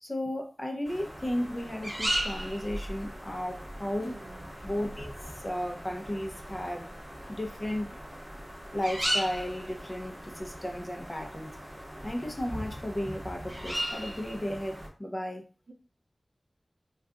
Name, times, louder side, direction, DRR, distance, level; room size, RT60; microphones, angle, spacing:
voice 1, 0.0-4.1 4.6-6.9 7.3-7.9 8.7-11.6 12.0-15.4, left 1 dB, 30° left, 2 dB, 0.7 m, -34 dB
sound 1, 0.8-14.9, right 1 dB, 20° right, 1.1 m, -37 dB
voice 2, 4.0-5.0 15.7-15.8, right 3 dB, 90° right, 3 dB, 0.5 m, -51 dB
2.5 x 2.3 x 3.6 m, 0.35 s
wide cardioid pair, 50°, 0 cm